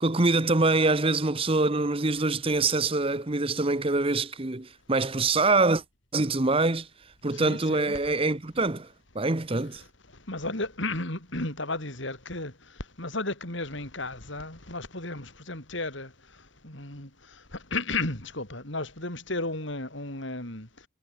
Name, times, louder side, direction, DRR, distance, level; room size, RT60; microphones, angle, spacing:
voice 1, 0.0-5.8 6.1-6.9 7.2-8.9 9.1-9.8, right 3 dB, 25° right, 1.0 m, -24 dB
voice 2, 7.3-8.0 10.3-12.5 13.0-16.1 16.6-17.1 17.5-20.7, left 2 dB, 60° left, 5.6 m, -33 dB
head